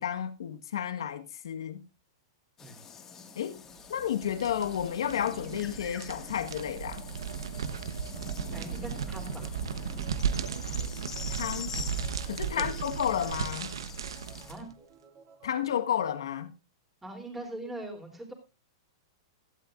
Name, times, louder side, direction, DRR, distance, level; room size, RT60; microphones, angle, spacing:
voice 1, 0.0-1.8 3.4-3.6 3.9-7.0 11.4-11.7 12.3-13.7 15.4-16.5, left 9 dB, 85° left, 1.5 m, -31 dB
sound 1, 2.6-14.5, left 6 dB, 15° left, 1.9 m, -45 dB
sound 2, 4.0-14.7, right 7 dB, 90° right, 1.0 m, -35 dB
sound 3, 6.2-16.0, right 5 dB, 30° right, 2.5 m, -55 dB
voice 2, 8.5-9.6 12.5-12.7 14.5-14.7 17.0-18.3, right 1 dB, 5° right, 3.3 m, -42 dB
16.5 x 12.0 x 2.5 m
hypercardioid pair, 150°, 2 cm